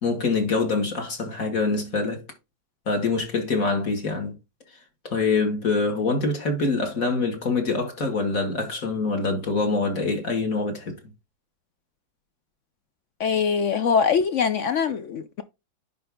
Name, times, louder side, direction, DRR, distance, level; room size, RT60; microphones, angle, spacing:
voice 1, 0.0-2.2 2.9-4.3 5.0-11.0, left 3 dB, 45° left, 2.2 m, -25 dB
voice 2, 13.2-15.4, left 6 dB, 75° left, 0.7 m, -23 dB
10.5 x 4.4 x 3.6 m
omnidirectional pair, 2.0 m